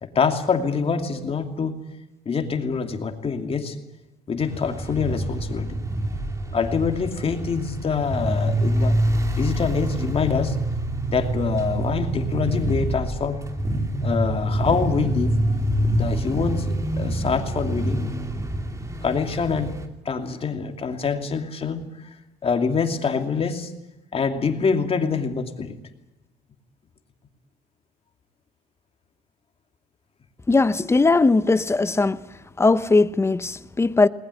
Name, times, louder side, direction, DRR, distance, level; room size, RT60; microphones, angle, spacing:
voice 1, 0.0-1.9 2.2-3.8 4.3-5.8 6.5-9.1 9.4-10.6 11.1-13.5 14.0-15.4 15.8-18.1 19.0-19.8 20.0-22.2 22.4-23.7 24.1-25.8, left 5 dB, 35° left, 2.7 m, -25 dB
sound 1, 4.4-19.8, right 1 dB, 20° right, 2.8 m, -26 dB
voice 2, 30.5-32.2 32.6-34.1, left 3 dB, 15° left, 0.9 m, -19 dB
20.5 x 20.0 x 9.8 m
cardioid pair, 110°, 17 cm